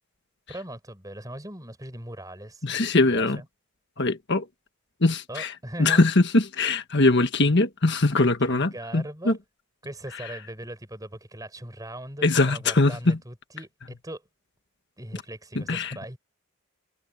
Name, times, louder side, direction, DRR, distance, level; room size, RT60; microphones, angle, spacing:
voice 1, 0.5-2.6 3.1-3.5 5.3-6.0 8.2-9.4 9.8-14.2 15.0-16.2, right 1 dB, 15° right, 6.4 m, -39 dB
voice 2, 2.6-3.4 4.0-4.5 5.0-5.5 5.8-9.4 12.2-13.2 15.5-16.2, left 2 dB, 55° left, 1.5 m, -22 dB
head